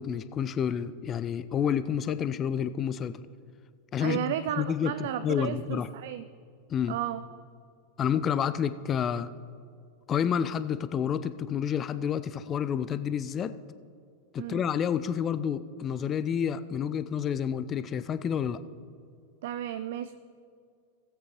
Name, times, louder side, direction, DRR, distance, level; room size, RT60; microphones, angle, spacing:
voice 1, 0.0-3.2 3.9-5.9 6.7-7.0 8.0-9.3 10.1-13.5 14.3-18.6, left 8 dB, 25° left, 13 dB, 0.4 m, -29 dB
voice 2, 4.0-6.2 6.9-7.2 14.4-14.6 19.4-20.1, right 11 dB, 55° right, 12 dB, 0.3 m, -33 dB
18.0 x 8.3 x 3.0 m, 2.3 s
figure-of-eight pair, 90°, 0 cm